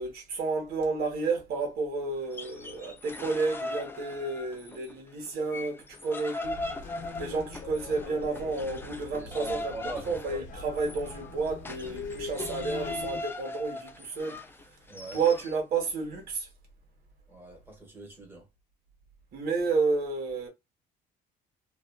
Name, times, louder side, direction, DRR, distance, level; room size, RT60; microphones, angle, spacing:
voice 1, 0.0-6.6 7.1-9.8 10.1-14.4 15.1-16.5 19.3-20.5, right 4 dB, 65° right, 1.3 m, -31 dB
sound 1, 2.2-4.9 5.3-15.5, left 2 dB, 15° left, 0.4 m, -40 dB
sound 2, 6.4-13.2, left 4 dB, 50° left, 0.8 m, -42 dB
voice 2, 7.0-7.4 9.1-10.3 14.9-15.2 17.3-18.4, right 3 dB, 10° right, 1.2 m, -43 dB
2.6 x 2.4 x 2.2 m
cardioid pair, 110°, 17 cm